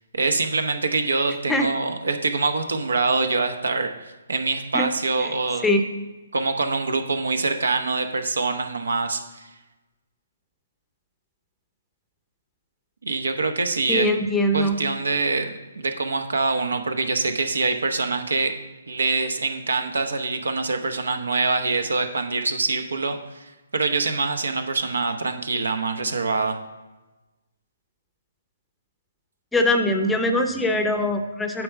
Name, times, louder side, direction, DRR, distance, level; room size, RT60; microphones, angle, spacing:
voice 1, 0.1-5.7 6.3-9.5 13.0-14.1 14.5-18.6 18.9-26.6, right 3 dB, 80° right, 7 dB, 0.9 m, -25 dB
voice 2, 13.9-14.8 29.5-31.6, left 1 dB, 5° left, 5 dB, 0.7 m, -22 dB
9.0 x 3.5 x 6.7 m, 1.1 s
figure-of-eight pair, 140°, 0 cm